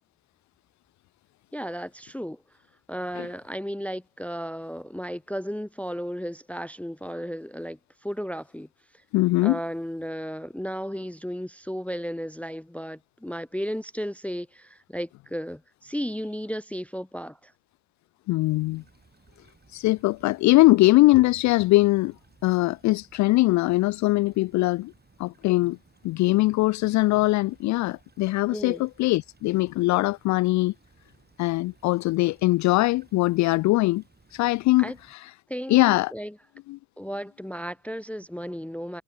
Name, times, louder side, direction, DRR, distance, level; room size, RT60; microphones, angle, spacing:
voice 1, 1.5-2.4 2.9-8.7 9.4-17.5 28.5-28.8 34.8-35.0 35.5-36.3 37.0-39.0, equal, 5° left, 0.7 m, -34 dB
voice 2, 9.1-9.6 18.3-18.8 19.7-22.1 22.4-24.9 25.2-25.8 26.0-30.7 31.4-34.0 34.3-35.3 35.7-36.1 36.7-36.8, left 20 dB, 45° left, 0.5 m, -21 dB
Stream / Trickle dribble, 18.4-35.1, right 4 dB, 25° right, 8.0 m, -60 dB
figure-of-eight pair, 50°, 41 cm